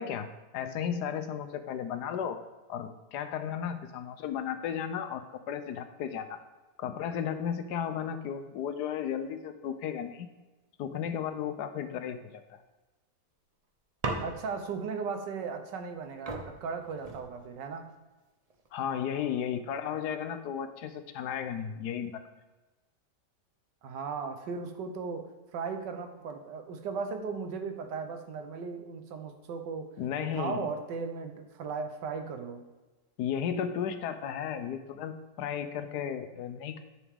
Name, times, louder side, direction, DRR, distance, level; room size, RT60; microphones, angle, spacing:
voice 1, 0.0-2.4 2.7-6.4 6.8-10.3 10.8-12.6 18.7-22.2 30.0-30.7 33.2-36.8, left 8 dB, 75° left, 9 dB, 1.2 m, -34 dB
sound 1, 14.0-14.8 15.9-16.0 16.3-17.7 18.5-18.9, right 2 dB, 40° right, 0.5 m, -38 dB
voice 2, 14.2-17.9 23.8-29.9 30.2-32.6, right 5 dB, 85° right, 7 dB, 1.5 m, -37 dB
9.9 x 6.0 x 3.6 m, 1.2 s
omnidirectional pair, 1.8 m